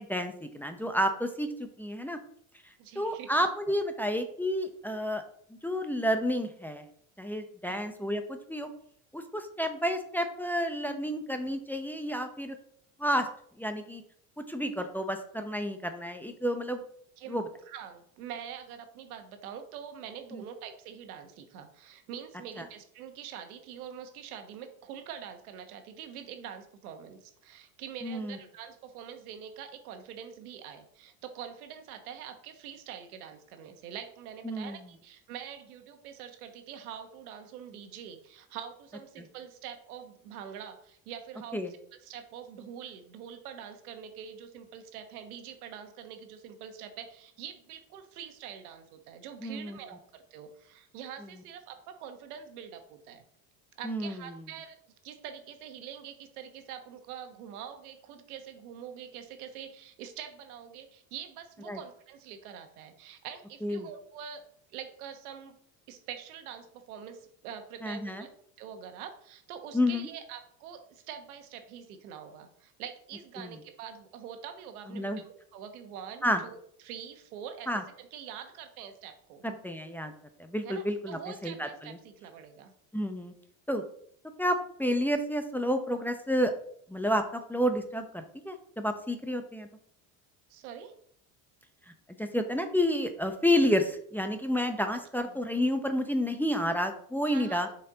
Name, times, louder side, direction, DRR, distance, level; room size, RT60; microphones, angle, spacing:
voice 1, 0.0-2.2 3.0-5.2 5.6-6.9 7.2-8.7 9.1-12.6 13.0-13.3 13.6-14.0 14.5-16.8 17.3-17.4 20.3-20.4 28.0-28.4 34.4-34.8 41.5-41.7 49.4-49.8 53.8-54.2 61.7-61.8 63.6-63.9 67.8-68.2 69.7-70.1 73.4-73.5 74.9-75.2 76.2-76.4 77.7-77.8 79.4-80.1 80.4-82.0 82.9-83.3 83.7-83.8 84.4-86.5 86.9-89.7 92.2-97.7, equal, 5° left, 6 dB, 0.6 m, -30 dB
voice 2, 2.8-3.3 7.6-7.8 17.2-17.4 17.7-53.2 53.8-54.8 55.0-64.4 64.7-65.5 65.9-68.3 68.6-77.7 78.0-79.4 80.6-82.7 90.5-90.9 94.9-95.4 97.3-97.7, right 8 dB, 90° right, 7 dB, 1.2 m, -45 dB
6.6 x 4.5 x 3.9 m, 0.64 s
supercardioid pair, 110°, 42 cm